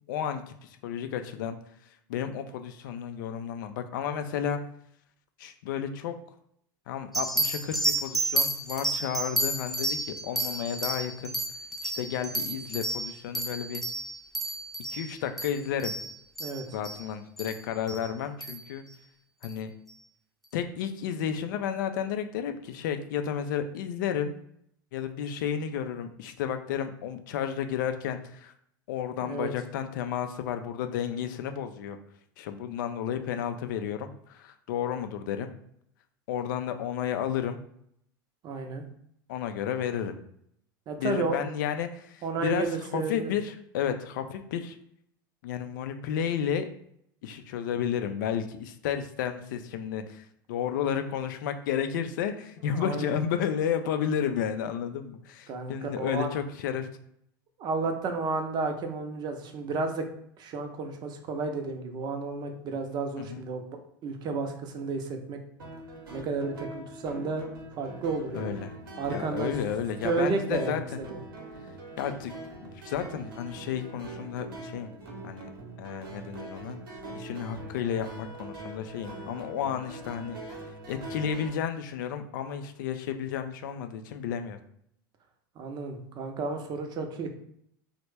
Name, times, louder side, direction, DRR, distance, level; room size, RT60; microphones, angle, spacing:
voice 1, 0.1-1.6 2.1-4.6 5.4-6.2 6.9-11.3 11.8-13.8 14.9-15.9 16.7-18.8 19.4-19.7 20.5-24.4 24.9-28.5 28.9-32.0 32.4-35.5 36.3-37.6 39.3-40.1 41.0-44.8 45.4-46.7 47.2-56.9 63.2-63.4 68.3-68.8 69.1-71.0 72.0-74.9 75.2-75.5 75.8-76.8 77.1-80.4 80.9-84.6, left 8 dB, 60° left, 8 dB, 0.4 m, -32 dB
sound 1, 7.1-17.0 17.4-17.6 17.9-18.0 18.4-18.7 19.4-19.5, right 2 dB, ahead, 0.6 m, -31 dB
voice 2, 38.4-38.8 40.9-41.4 42.2-43.3 52.7-53.1 55.5-56.3 57.6-60.1 60.4-65.4 66.1-67.4 67.8-68.6 69.0-69.5 70.0-70.8 71.1-71.2 85.6-87.3, right 4 dB, 40° right, 5 dB, 0.6 m, -32 dB
sound 2, 65.6-81.5, right 2 dB, 70° right, 0.8 m, -43 dB
3.0 x 2.1 x 3.2 m, 0.70 s
figure-of-eight pair, 80°, 12 cm